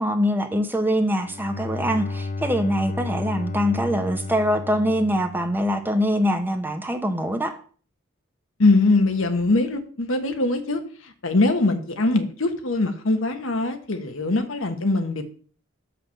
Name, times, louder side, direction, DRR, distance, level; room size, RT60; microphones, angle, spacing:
voice 1, 0.0-7.6, equal, 10° right, 6 dB, 1.0 m, -23 dB
Bowed string instrument, 1.1-6.0, left 3 dB, 40° left, 0.5 m, -33 dB
voice 2, 8.6-15.2, left 2 dB, 70° left, 7 dB, 1.3 m, -22 dB
6.8 x 5.8 x 6.8 m, 0.43 s
head